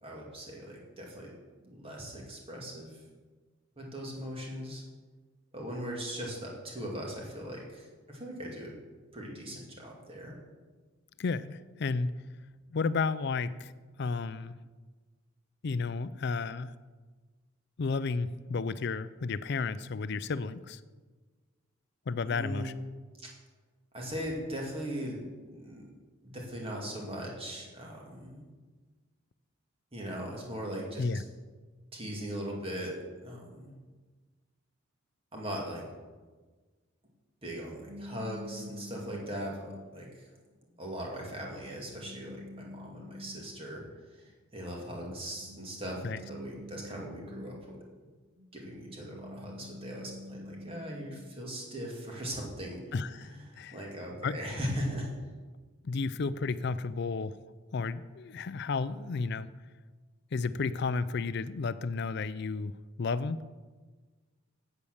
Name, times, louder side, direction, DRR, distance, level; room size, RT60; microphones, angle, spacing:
voice 1, 0.0-2.9 3.8-4.8 5.5-8.7 9.1-10.3 22.3-22.8 23.2-23.3 23.9-25.2 25.5-25.9 26.3-28.4 29.9-31.0 31.9-32.9 33.2-33.7 35.3-35.9 37.4-40.3 40.8-43.8 44.1-46.0 46.3-47.6 48.5-52.8 53.3-53.4 53.7-55.1, equal, 25° right, -2 dB, 2.2 m, -39 dB
voice 2, 11.2-12.2 12.7-13.7 14.0-14.6 15.6-16.8 17.8-20.8 22.1-22.7 31.0-31.2 46.0-46.2 52.9-53.8 54.2-54.4 55.8-57.4 57.7-59.5 60.3-63.4, left 4 dB, 55° left, 15 dB, 0.4 m, -32 dB
sound 1, 37.9-40.0 40.7-43.8 44.9-47.9 48.4-51.3, equal, 45° right, 1.0 m, -48 dB
8.6 x 8.4 x 6.5 m, 1.4 s
head